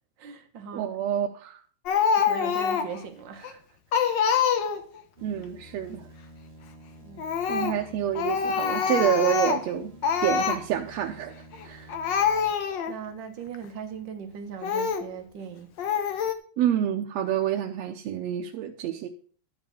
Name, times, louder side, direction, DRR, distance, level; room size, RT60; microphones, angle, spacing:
voice 1, 0.2-0.9 2.2-3.6 7.0-7.2 7.8-7.9 12.9-15.7, right 6 dB, 50° right, 1.5 m, -39 dB
voice 2, 0.7-1.6 5.2-6.1 7.5-9.9 10.2-11.3 11.6-11.9 16.6-19.1, right 10 dB, 70° right, 1.9 m, -28 dB
Speech, 1.9-3.0 3.4-3.5 3.9-5.0 7.2-7.8 8.2-9.7 10.0-10.6 11.5-11.6 11.9-13.0 13.5-13.7 14.6-15.1 15.8-16.3, left 7 dB, 65° left, 1.1 m, -25 dB
sound 1, 5.2-12.5, right 1 dB, 30° right, 1.4 m, -50 dB
12.0 x 5.3 x 7.0 m
omnidirectional pair, 3.3 m